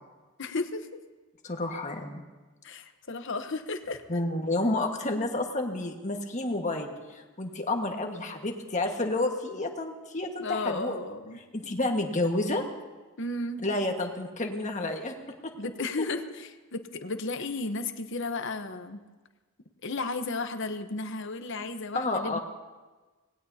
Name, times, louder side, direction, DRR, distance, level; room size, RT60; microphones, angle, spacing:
voice 1, 0.4-0.9 2.6-4.0 10.4-11.4 13.2-13.7 15.6-19.0 19.8-22.4, left 3 dB, 60° left, 8 dB, 1.0 m, -34 dB
voice 2, 1.4-2.2 4.1-11.0 11.5-12.6 13.6-15.1 15.4-15.5 21.9-22.4, left 2 dB, 35° left, 3 dB, 1.7 m, -30 dB
26.0 x 19.5 x 2.8 m, 1.3 s
head